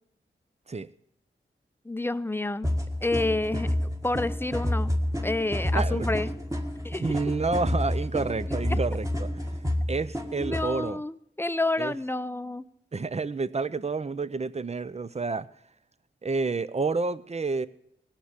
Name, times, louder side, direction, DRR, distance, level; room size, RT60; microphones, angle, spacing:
voice 1, 1.8-2.7 3.0-4.9 5.2-6.3 6.8-7.0 8.5-8.8 10.4-12.6, left 2 dB, 10° left, 14 dB, 0.6 m, -29 dB
sound 1, 2.6-10.7, left 1 dB, 15° right, 1.6 m, -29 dB
voice 2, 5.7-6.1 7.0-9.4 9.9-11.0 11.8-11.9 12.9-15.5 16.2-17.7, right 3 dB, 30° right, 15 dB, 0.6 m, -29 dB
18.0 x 6.0 x 8.2 m, 0.74 s
cardioid pair, 55°, 21 cm